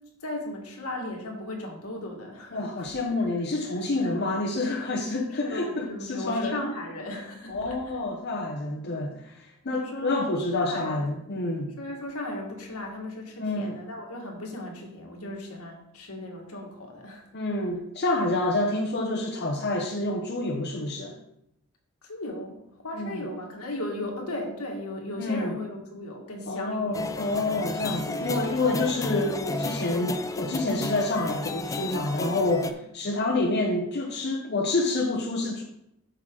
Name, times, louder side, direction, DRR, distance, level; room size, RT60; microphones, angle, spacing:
voice 1, 0.2-2.9 3.2-4.2 5.4-8.0 9.7-10.1 10.6-11.1 11.8-17.3 22.0-27.0, left 1 dB, 80° left, 0 dB, 1.9 m, -37 dB
voice 2, 2.5-6.6 7.5-11.7 13.4-13.7 17.3-21.2 22.9-23.2 25.2-25.5 26.5-35.6, left 2 dB, 50° left, -1 dB, 0.9 m, -28 dB
sound 1, 26.9-32.7, left 2 dB, 15° left, 0.3 m, -32 dB
7.9 x 6.2 x 3.8 m, 0.80 s
head